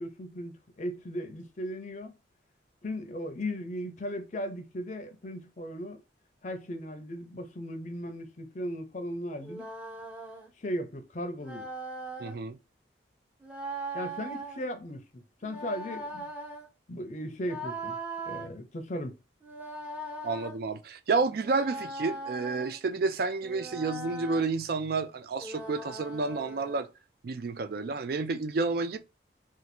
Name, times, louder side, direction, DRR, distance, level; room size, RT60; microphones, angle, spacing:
voice 1, 0.0-2.1 2.8-6.0 6.4-9.7 10.6-11.7 13.9-16.3 16.9-18.0 18.3-19.2, equal, 40° left, 0.5 m, -37 dB
sound 1, 9.4-10.5 11.4-12.4 13.4-14.6 15.4-16.7 17.4-18.5 19.4-20.5 21.4-22.8 23.4-24.5 25.4-26.8, right 2 dB, 10° right, 0.6 m, -40 dB
voice 2, 12.2-12.6 20.2-26.9 27.2-29.0, right 4 dB, 55° right, 0.3 m, -30 dB
2.6 x 2.4 x 4.1 m
head